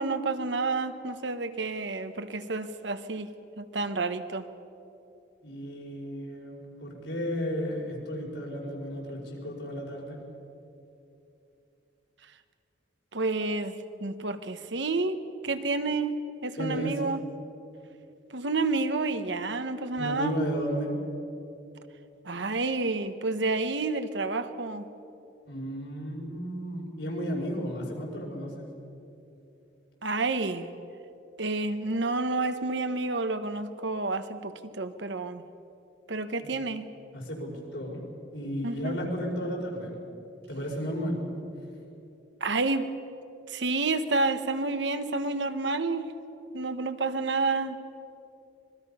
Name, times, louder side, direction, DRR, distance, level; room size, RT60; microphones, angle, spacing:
voice 1, 0.0-3.3 3.6-4.4 13.1-13.7 14.0-17.2 18.3-20.4 22.2-24.8 30.0-30.7 31.4-35.4 36.1-36.9 38.6-39.0 42.4-42.9 43.5-46.1 46.5-47.8, right 3 dB, 70° right, 9 dB, 1.2 m, -29 dB
voice 2, 5.4-10.2 16.6-17.0 20.0-21.0 25.5-28.7 36.4-36.6 37.1-38.0 38.3-39.9 40.5-41.2, equal, 75° left, -2 dB, 5.3 m, -33 dB
26.0 x 21.5 x 5.7 m, 2.8 s
head